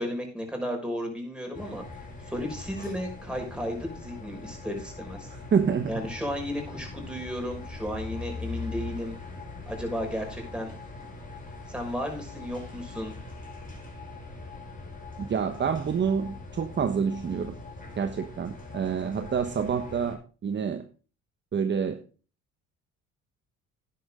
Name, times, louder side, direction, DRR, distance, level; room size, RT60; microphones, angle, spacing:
voice 1, 0.0-1.8 2.3-5.3 5.9-9.1 9.7-10.7 11.7-13.1, equal, 5° right, 2 dB, 5.9 m, -34 dB
sound 1, 1.5-20.1, left 3 dB, 25° left, 5.0 m, -41 dB
voice 2, 5.3-6.1 15.2-17.6 18.0-20.8 21.5-22.0, right 6 dB, 35° right, 8 dB, 1.2 m, -28 dB
11.0 x 10.5 x 3.8 m, 0.37 s
supercardioid pair, 85°, 31 cm